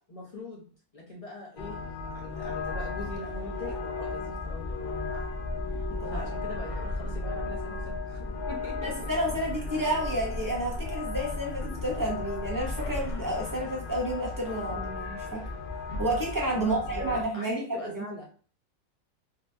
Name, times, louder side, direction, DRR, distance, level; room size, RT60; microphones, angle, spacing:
voice 1, 0.1-1.8 2.1-5.3 6.1-9.1 10.1-10.2 16.5-18.2, left 2 dB, 35° left, -4 dB, 0.6 m, -41 dB
sound 1, 1.6-17.2, left 3 dB, 75° left, 0.4 m, -35 dB
voice 2, 5.9-6.3 8.8-15.4 16.0-17.6 17.8-18.0, right 1 dB, 30° right, -2 dB, 0.3 m, -30 dB
3.8 x 2.2 x 2.6 m, 0.42 s
omnidirectional pair, 1.5 m